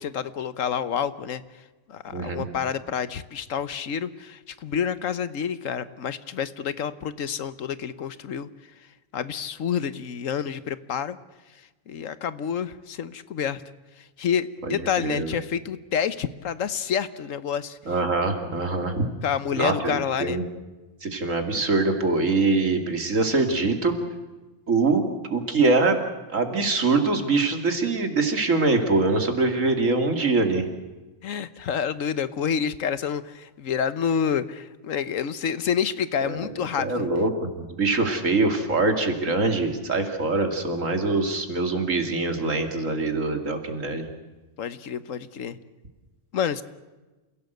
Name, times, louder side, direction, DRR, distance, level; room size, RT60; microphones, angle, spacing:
voice 1, 0.0-1.6 1.9-8.5 9.1-11.2 11.5-13.6 14.0-17.8 19.2-20.4 31.2-37.1 44.6-45.6 46.3-46.6, left 7 dB, 90° left, 14 dB, 1.4 m, -28 dB
voice 2, 2.1-2.4 14.6-15.3 17.9-19.1 19.5-20.4 21.0-23.9 24.7-25.0 25.3-26.0 26.3-30.7 36.2-36.4 36.8-44.1, right 3 dB, 80° right, 5 dB, 2.9 m, -23 dB
28.0 x 17.0 x 8.0 m, 1.2 s
omnidirectional pair, 1.3 m